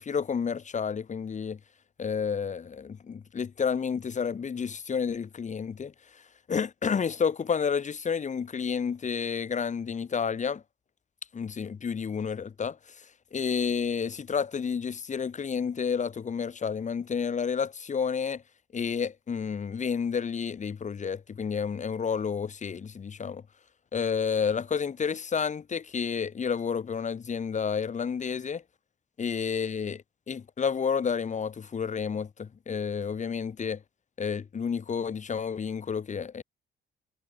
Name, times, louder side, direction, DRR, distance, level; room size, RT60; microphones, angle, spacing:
voice 1, 0.0-1.6 2.0-10.6 11.3-18.4 18.7-23.4 23.9-28.6 29.2-33.8 34.2-36.4, left 6 dB, 35° left, 1.4 m, -30 dB
cardioid pair, 90°, 20 cm